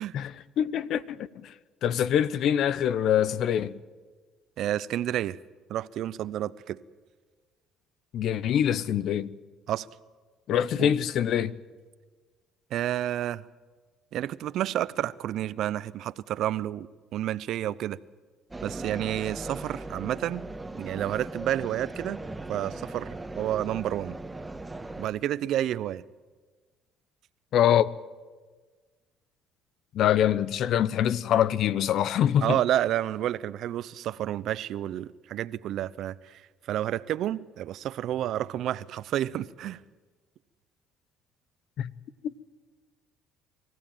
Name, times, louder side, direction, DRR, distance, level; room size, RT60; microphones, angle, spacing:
voice 1, 0.1-1.5 1.8-3.8 8.1-9.3 10.5-11.5 27.5-27.9 29.9-32.6 41.8-41.9 42.2-42.4, left 10 dB, 65° left, 0.8 m, -24 dB
voice 2, 4.6-5.4 5.7-6.8 9.7-9.9 10.8-10.9 12.7-13.4 14.1-18.0 18.6-20.4 20.7-22.2 22.5-24.2 25.0-26.0 32.4-36.2 36.7-39.8, right 12 dB, 65° right, 0.7 m, -30 dB
sound 1, 18.5-25.1, right 2 dB, 15° right, 1.4 m, -38 dB
24.5 x 15.5 x 9.1 m
supercardioid pair, 85°, 0 cm